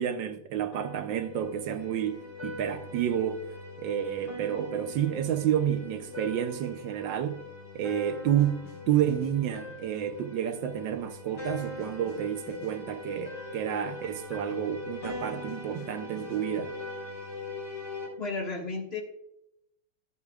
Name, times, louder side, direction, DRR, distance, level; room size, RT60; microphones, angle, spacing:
voice 1, 0.0-3.4 3.8-7.4 7.7-16.7, right 10 dB, 75° right, 1.3 m, -30 dB
sound 1, 0.7-18.1, left 3 dB, 80° left, 4.9 m, -41 dB
voice 2, 18.2-19.0, left 3 dB, 35° left, 1.6 m, -33 dB
15.5 x 8.2 x 2.3 m
omnidirectional pair, 2.1 m